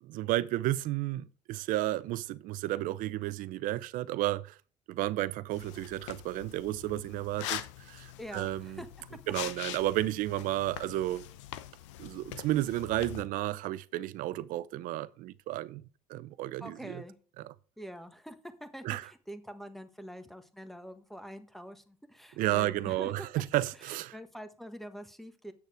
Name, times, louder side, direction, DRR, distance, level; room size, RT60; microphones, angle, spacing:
voice 1, 0.0-4.6 4.9-8.8 9.3-11.2 12.0-15.8 16.1-17.0 18.8-19.1 22.4-24.2, right 15 dB, 65° right, 0.7 m, -32 dB
sound 1, 5.5-13.2, left 13 dB, 85° left, 0.8 m, -43 dB
voice 2, 8.2-8.9 9.4-9.5 16.6-17.2 17.8-23.3 23.8-25.5, equal, ahead, 1.4 m, -45 dB
8.7 x 6.5 x 4.9 m
supercardioid pair, 85°, 15 cm